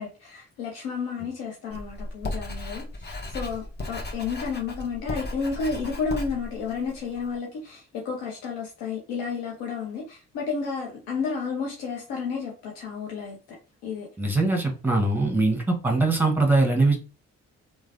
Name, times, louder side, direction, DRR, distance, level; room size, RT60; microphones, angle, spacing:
voice 1, 0.0-13.6 13.8-14.1, left 5 dB, 75° left, -1 dB, 0.7 m, -32 dB
Writing, 1.7-7.4, left 2 dB, 25° left, 1.0 m, -36 dB
voice 2, 14.2-17.0, right 2 dB, 5° right, 1 dB, 1.2 m, -22 dB
3.1 x 2.2 x 2.6 m, 0.34 s
hypercardioid pair, 45°, 38 cm